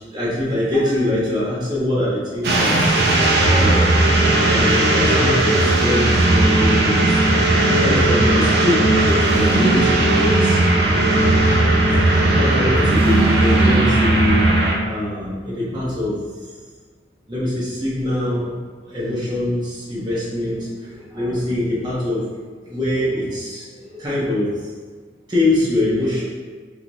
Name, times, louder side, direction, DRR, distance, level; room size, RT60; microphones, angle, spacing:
voice 1, 0.0-3.0 3.5-4.1 4.4-7.2 7.7-10.6 12.0-16.5 17.3-18.5 18.9-22.4 22.7-24.7 25.3-26.2, left 1 dB, 25° right, -9 dB, 1.3 m, -23 dB
sound 1, 2.4-14.8, right 2 dB, 60° right, 0.6 m, -16 dB
5.5 x 2.7 x 3.0 m, 1.5 s
head